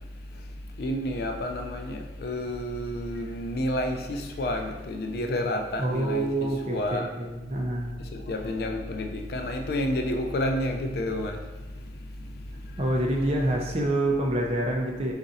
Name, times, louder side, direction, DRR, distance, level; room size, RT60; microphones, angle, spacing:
voice 1, 0.8-7.1 8.0-11.5 11.8-13.0, left 1 dB, 55° left, 0.4 m, -30 dB
voice 2, 5.8-7.9 12.8-15.1, right 1 dB, 35° right, 0.5 m, -27 dB
4.0 x 2.5 x 4.0 m
head